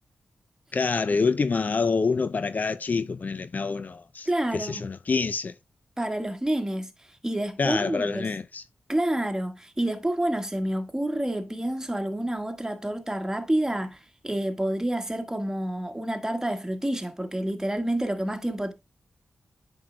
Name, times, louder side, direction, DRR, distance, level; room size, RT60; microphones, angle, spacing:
voice 1, 0.7-4.3 4.5-5.5 7.6-8.6, left 4 dB, 55° left, 0.4 m, -26 dB
voice 2, 4.3-4.8 6.0-6.9 7.2-8.3 8.9-18.7, right 1 dB, 15° right, 1.5 m, -28 dB
8.6 x 6.2 x 2.2 m
cardioid pair, 40°, 3 cm